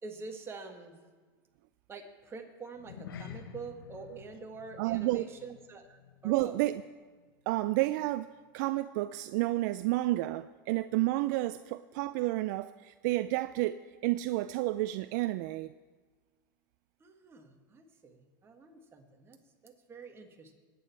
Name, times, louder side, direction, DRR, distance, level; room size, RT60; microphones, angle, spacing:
voice 1, 0.0-1.0 1.9-6.6 17.0-19.4 19.6-20.5, right 4 dB, 20° right, 3 dB, 1.9 m, -46 dB
sound 1, 2.7-7.4 7.6-7.9 8.4-8.5, left 7 dB, 85° left, 1.3 m, -49 dB
voice 2, 4.8-5.2 6.2-6.7 7.5-15.7, right 17 dB, 60° right, 13 dB, 0.4 m, -30 dB
21.5 x 9.4 x 4.6 m, 1.4 s
hypercardioid pair, 115°, 11 cm